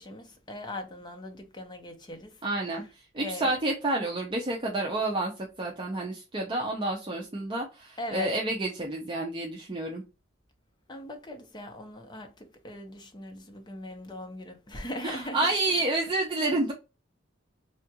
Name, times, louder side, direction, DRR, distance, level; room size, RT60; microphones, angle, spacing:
voice 1, 0.0-2.4 3.2-3.5 8.0-8.3 10.9-15.8, left 1 dB, 20° left, 0.7 m, -40 dB
voice 2, 2.4-2.8 3.1-10.0 15.0-16.7, right 2 dB, 25° right, 0.6 m, -29 dB
3.4 x 2.5 x 2.8 m
head